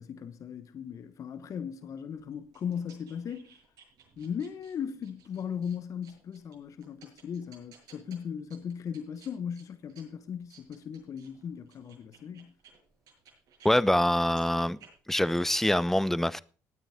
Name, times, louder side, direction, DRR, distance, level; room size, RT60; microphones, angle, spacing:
voice 1, 0.0-3.6 4.2-12.5, left 7 dB, 55° left, 1.1 m, -38 dB
sound 1, 1.8-13.7 14.1-15.4, right 6 dB, 70° right, 7.1 m, -59 dB
voice 2, 13.6-14.8 15.1-16.4, left 1 dB, 5° left, 0.7 m, -25 dB
18.5 x 9.1 x 3.6 m
supercardioid pair, 65°, 7 cm